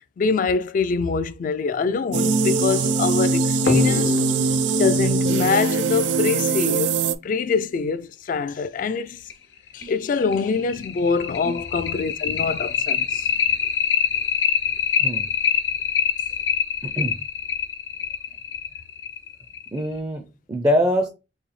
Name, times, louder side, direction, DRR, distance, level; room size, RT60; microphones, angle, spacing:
voice 1, 0.2-4.2 4.8-7.0 7.2-9.2 9.7-13.3, left 5 dB, 50° left, 0.3 m, -24 dB
sound 1, 2.1-7.2, right 4 dB, 85° right, 0.4 m, -21 dB
sound 2, 3.7-6.8 8.3-8.4 8.8-8.9 9.3-9.4 9.8-19.9, left 6 dB, 80° left, 0.7 m, -25 dB
voice 2, 16.8-17.2 19.7-21.1, equal, 20° right, 0.4 m, -24 dB
3.9 x 2.7 x 3.2 m
head